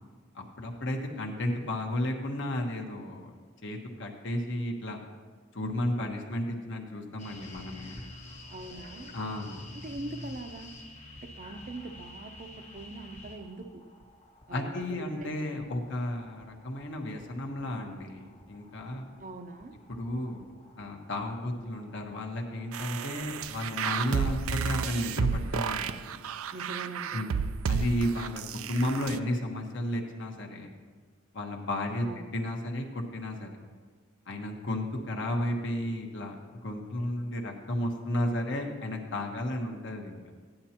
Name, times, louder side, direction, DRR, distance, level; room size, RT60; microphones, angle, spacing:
voice 1, 0.3-3.3 3.6-5.0 5.5-7.9 9.1-9.6 14.5-18.2 18.5-19.0 19.9-20.5 20.8-26.1 27.1-27.4 27.7-28.4 28.7-30.7 31.3-32.1 32.3-33.5 34.3-40.2, left 1 dB, 60° left, 2 dB, 1.3 m, -33 dB
sound 1, 7.2-23.3, left 1 dB, 35° left, 1.3 m, -50 dB
voice 2, 8.5-9.1 9.7-10.7 11.2-13.8 14.5-15.6 19.2-19.8 26.5-27.3 32.0-32.3, right 2 dB, 40° right, 8 dB, 0.6 m, -42 dB
sound 2, 22.7-29.2, right 6 dB, 90° right, 0.4 m, -32 dB
15.0 x 10.5 x 2.9 m, 1.5 s
head